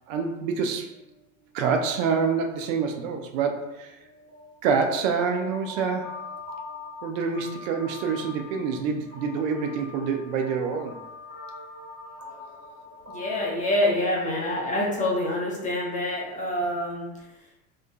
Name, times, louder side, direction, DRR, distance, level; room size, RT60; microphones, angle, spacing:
voice 1, 0.1-0.9 1.5-4.0 4.6-6.2 7.0-11.0, right 5 dB, 65° right, 4 dB, 0.5 m, -26 dB
sound 1, 0.7-1.8 2.1-2.3 2.5-16.9, left 2 dB, 35° right, 1.4 m, -44 dB
voice 2, 13.1-17.1, left 1 dB, 20° left, -3 dB, 0.7 m, -26 dB
2.4 x 2.2 x 2.3 m, 0.95 s
hypercardioid pair, 90°, 41 cm